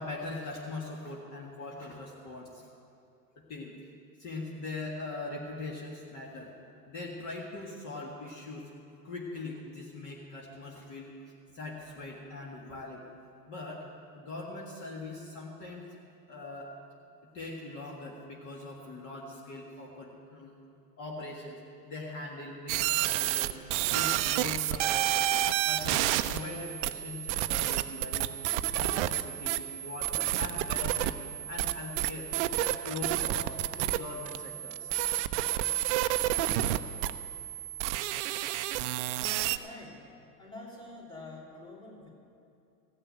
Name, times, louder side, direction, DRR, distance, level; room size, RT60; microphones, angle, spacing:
voice 1, 0.0-2.7 3.5-3.8 4.2-6.5 6.9-8.7 9.0-11.1 11.5-13.0 13.5-13.8 14.1-15.9 16.3-16.7 17.3-20.5 21.0-21.6 21.8-25.3 25.6-28.3 28.7-31.2 31.5-32.3 32.6-34.9 37.9-38.0, left 2 dB, 35° left, -2 dB, 1.8 m, -41 dB
sound 1, 22.7-39.6, right 13 dB, 45° right, 0.5 m, -30 dB
voice 2, 39.2-40.1 40.4-42.1, left 2 dB, 10° left, -4 dB, 2.9 m, -47 dB
16.0 x 6.6 x 9.0 m, 2.7 s
hypercardioid pair, 105°, 50 cm